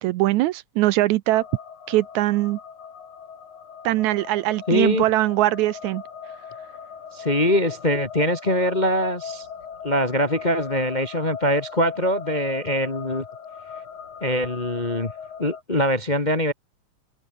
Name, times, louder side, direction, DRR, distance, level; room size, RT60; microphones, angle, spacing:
voice 1, 0.0-1.4 1.9-2.6 3.8-6.0, right 16 dB, 80° right, 1.9 m, -21 dB
sound 1, 1.3-15.6, left 7 dB, 75° left, 4.4 m, -38 dB
voice 2, 4.7-5.0 7.1-9.5 9.8-13.2 14.2-15.1 15.4-16.5, equal, 25° left, 1.1 m, -23 dB
open air
omnidirectional pair, 3.5 m